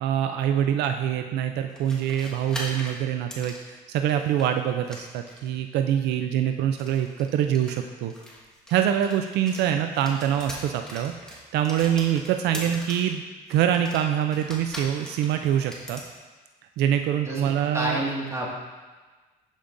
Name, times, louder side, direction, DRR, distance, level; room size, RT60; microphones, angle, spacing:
voice 1, 0.0-8.1 8.7-13.2 13.5-16.0 16.8-18.0, right 10 dB, 80° right, 6 dB, 0.4 m, -25 dB
sound 1, 1.7-4.5 4.8-5.6 6.7-9.7 9.9-13.1 13.5-16.1, equal, 5° left, 1.5 m, -41 dB
voice 2, 17.7-18.5, right 1 dB, 15° right, -4 dB, 1.9 m, -29 dB
12.5 x 5.1 x 2.6 m, 1.3 s
cardioid pair, 110°, 17 cm